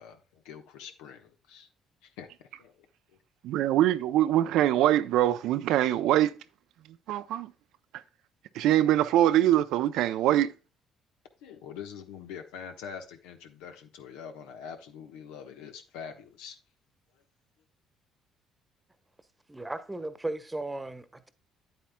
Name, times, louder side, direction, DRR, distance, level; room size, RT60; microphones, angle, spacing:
voice 1, 0.0-1.7 2.0-2.7 11.4-16.6, left 7 dB, 85° left, 1.1 m, -44 dB
voice 2, 3.4-6.3 7.1-7.5 8.6-10.5, right 12 dB, 75° right, 0.5 m, -23 dB
voice 3, 19.5-21.3, right 2 dB, 15° right, 1.1 m, -36 dB
9.1 x 8.6 x 2.2 m
supercardioid pair, 70°, 0 cm